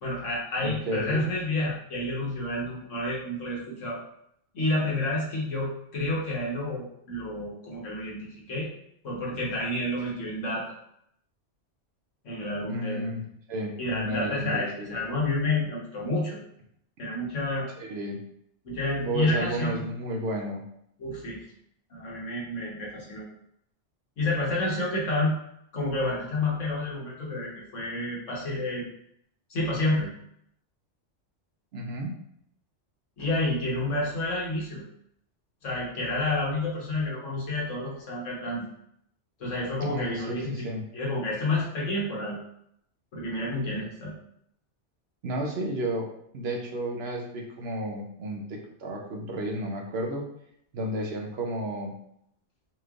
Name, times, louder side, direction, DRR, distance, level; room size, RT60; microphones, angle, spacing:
voice 1, 0.0-4.0 4.5-8.7 9.0-10.6 12.2-13.0 13.8-16.4 17.0-17.7 18.6-19.8 21.0-21.4 21.9-23.2 24.2-25.4 25.7-28.8 29.5-30.1 33.2-34.8 35.6-38.7 39.4-40.6 40.9-42.4 43.1-44.1, left 2 dB, 85° left, -4 dB, 1.5 m, -29 dB
voice 2, 0.6-1.2 12.7-15.2 17.8-18.2 19.0-20.6 31.7-32.1 39.8-40.8 45.2-46.1 46.3-50.3 50.7-51.9, right 1 dB, 60° right, 0 dB, 0.9 m, -32 dB
4.2 x 3.1 x 2.4 m, 0.71 s
omnidirectional pair, 1.2 m